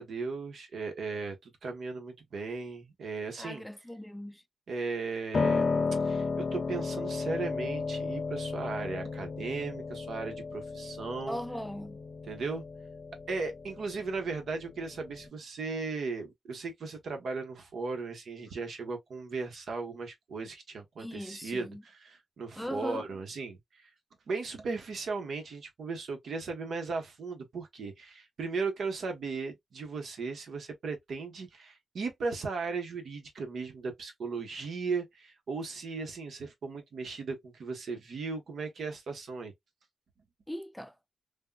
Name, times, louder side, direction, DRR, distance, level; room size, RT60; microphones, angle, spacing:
voice 1, 0.0-3.6 4.7-11.4 12.3-12.6 13.3-23.9 24.3-39.5, right 4 dB, 85° right, 0.9 m, -37 dB
voice 2, 3.4-4.4 11.3-12.0 21.0-21.8 22.6-23.1 40.5-40.9, equal, 5° left, 0.3 m, -39 dB
Piano, 5.3-15.3, left 4 dB, 50° left, 0.6 m, -33 dB
3.4 x 2.2 x 2.2 m
wide cardioid pair, 90°, 0 cm